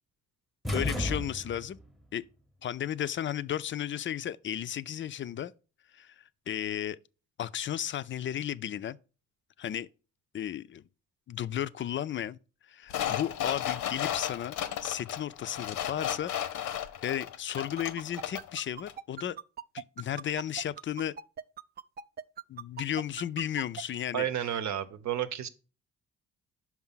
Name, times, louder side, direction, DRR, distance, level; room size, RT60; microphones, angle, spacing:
sound 1, 0.6-1.9, left 1 dB, ahead, 0.7 m, -33 dB
voice 1, 0.7-1.8 2.1-2.2 2.6-5.5 5.9-7.0 7.4-9.0 9.6-9.9 10.3-10.8 11.3-12.4 12.7-16.3 16.7-19.4 19.7-21.1 22.5-24.3, left 10 dB, 40° left, 0.4 m, -34 dB
sound 2, 12.9-18.6 18.9-19.0, left 10 dB, 80° left, 0.8 m, -34 dB
sound 3, 17.6-23.8, right 9 dB, 35° right, 0.4 m, -40 dB
voice 2, 24.1-25.5, right 10 dB, 65° right, 0.8 m, -31 dB
5.8 x 4.7 x 5.6 m
cardioid pair, 90°, 30 cm